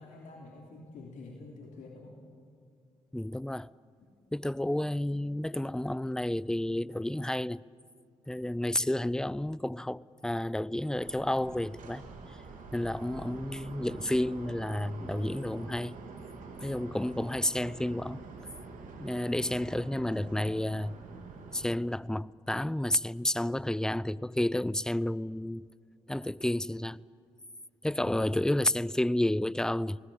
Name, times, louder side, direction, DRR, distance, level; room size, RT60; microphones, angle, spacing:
voice 1, 0.0-2.2, left 3 dB, 65° left, 3.2 m, -48 dB
voice 2, 3.1-3.7 4.3-7.6 8.3-12.0 12.3-12.4 12.7-16.0 16.6-18.2 19.0-21.0 21.5-25.7 26.1-27.0 27.8-30.0, left 1 dB, 5° left, 0.6 m, -31 dB
sound 1, 10.9-21.7, right 4 dB, 65° right, 3.3 m, -46 dB
28.5 x 19.0 x 8.8 m
hypercardioid pair, 45°, 14 cm